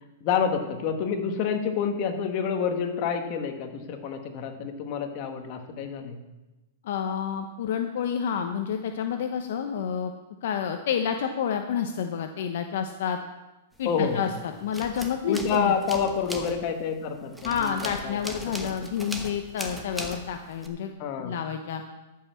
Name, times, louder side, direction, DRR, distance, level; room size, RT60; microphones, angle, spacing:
voice 1, 0.2-6.2 13.8-14.4 15.2-18.4 18.8-18.9 21.0-21.4, left 6 dB, 40° left, 4 dB, 1.5 m, -28 dB
voice 2, 6.8-10.1 10.4-13.2 13.8-15.7 17.4-20.9 21.2-21.8, left 8 dB, 65° left, 6 dB, 0.8 m, -29 dB
sound 1, 13.8-14.3 14.6-20.7, right 1 dB, ahead, 1.1 m, -39 dB
12.0 x 5.6 x 7.4 m, 1.1 s
hypercardioid pair, 145°, 0 cm